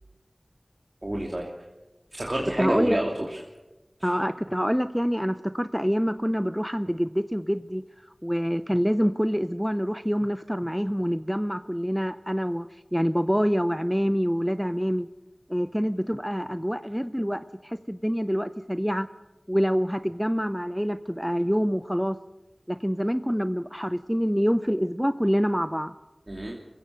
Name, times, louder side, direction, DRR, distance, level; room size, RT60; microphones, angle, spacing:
voice 1, 1.0-1.5 2.1-3.4 4.0-4.1 26.3-26.6, right 1 dB, 45° right, -1 dB, 2.7 m, -28 dB
voice 2, 2.6-3.0 4.0-15.1 15.5-19.1 19.5-22.2 22.7-25.9, equal, ahead, 11 dB, 0.6 m, -26 dB
27.0 x 16.0 x 6.3 m, 1.1 s
wide cardioid pair, 45°, 0 cm